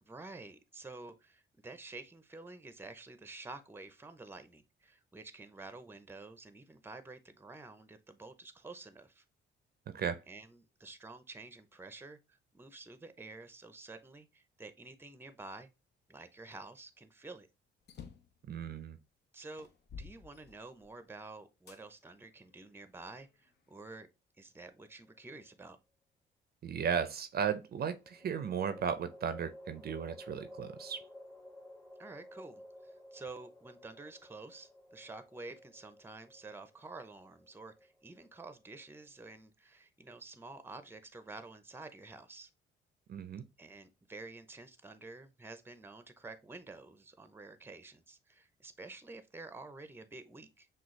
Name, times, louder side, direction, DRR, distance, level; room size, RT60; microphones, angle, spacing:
voice 1, 0.0-9.2 10.3-15.7 16.1-17.5 19.3-19.7 20.0-24.1 24.4-25.8 32.0-42.5 43.6-50.7, right 3 dB, 10° right, 0.6 m, -50 dB
voice 2, 9.9-10.2 18.5-19.0 26.6-31.0 43.1-43.4, right 7 dB, 50° right, 0.5 m, -35 dB
sound 1, 17.8-18.4 19.0-19.1 19.6-21.0 21.7-21.8 22.5-23.6, left 6 dB, 55° left, 0.7 m, -51 dB
sound 2, 24.8-25.6 27.9-39.2, left 1 dB, 15° left, 0.9 m, -54 dB
6.1 x 2.4 x 3.1 m
cardioid pair, 90°, 20 cm